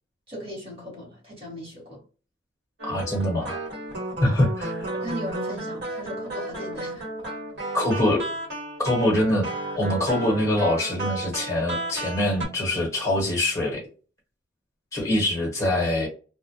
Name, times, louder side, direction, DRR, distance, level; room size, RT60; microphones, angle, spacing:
voice 1, 0.3-2.0 4.2-4.4 4.9-7.1, equal, 30° right, 1.3 m, -37 dB
voice 2, 2.8-3.6 4.2-4.8 7.7-8.2 8.8-9.5 9.7-13.8 14.9-16.1, left 1 dB, 15° left, 1.0 m, -24 dB
sound 1, 2.8-12.5, right 2 dB, 60° right, 1.2 m, -33 dB
2.2 x 2.0 x 2.7 m
head